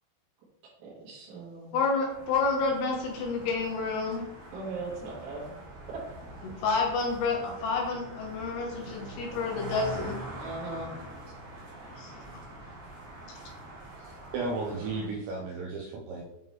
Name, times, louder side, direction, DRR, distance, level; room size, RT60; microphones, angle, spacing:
voice 1, 0.8-1.7 4.5-5.4 5.9-6.0 10.4-10.9, right 3 dB, 70° right, -7 dB, 3.7 m, -38 dB
voice 2, 1.7-4.2 6.6-10.2 11.9-12.1, left 4 dB, 80° left, 0 dB, 2.4 m, -29 dB
sound 1, 2.1-15.1, right 1 dB, 55° right, 2.2 m, -44 dB
voice 3, 14.0-16.2, right 3 dB, 90° right, -1 dB, 2.5 m, -34 dB
9.2 x 3.8 x 3.0 m, 1.0 s
omnidirectional pair, 5.8 m